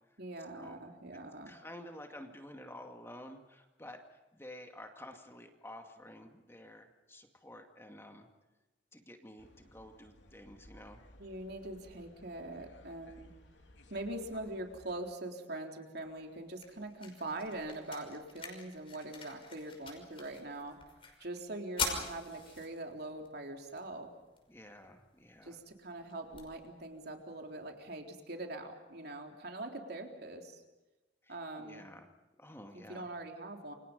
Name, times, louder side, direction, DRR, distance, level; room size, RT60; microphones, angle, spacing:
voice 1, 0.2-1.5 11.2-13.3 13.9-20.8 21.2-24.1 25.4-30.6 31.3-31.9 32.7-33.7, right 2 dB, 60° right, 3 dB, 3.8 m, -43 dB
voice 2, 1.5-4.0 4.3-8.3 8.9-11.0 24.5-25.6 31.2-32.1 32.4-33.1, left 1 dB, 15° left, 4 dB, 2.3 m, -51 dB
sound 1, 9.4-15.0, left 1 dB, 80° left, 3.3 m, -58 dB
sound 2, 16.0-28.0, left 4 dB, 30° left, 5.7 m, -45 dB
29.0 x 25.5 x 5.4 m, 1.1 s
head